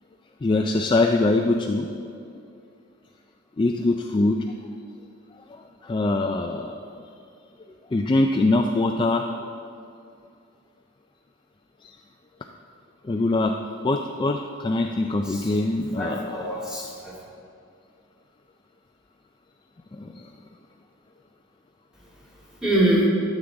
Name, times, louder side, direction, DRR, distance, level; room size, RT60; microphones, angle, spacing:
voice 1, 0.4-1.9 3.6-4.4 5.8-6.8 7.9-9.3 13.0-13.6 13.8-16.6 20.0-20.2, left 2 dB, 25° left, 3 dB, 0.3 m, -23 dB
voice 2, 15.2-15.6 16.0-17.2 22.6-23.1, right 1 dB, 5° right, -5 dB, 2.1 m, -24 dB
13.0 x 7.4 x 3.9 m, 2.5 s
head